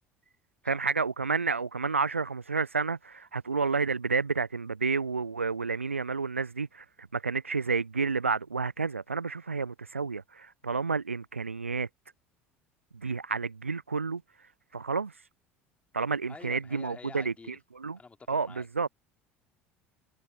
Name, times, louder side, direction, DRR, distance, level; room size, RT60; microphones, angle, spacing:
voice 1, 0.6-11.9 12.9-14.2 14.7-15.1 15.9-18.0 18.3-18.9, right 4 dB, 85° right, 0.4 m, -30 dB
voice 2, 16.3-17.6 18.0-18.7, left 4 dB, 20° left, 2.8 m, -48 dB
figure-of-eight pair, 65°, 7 cm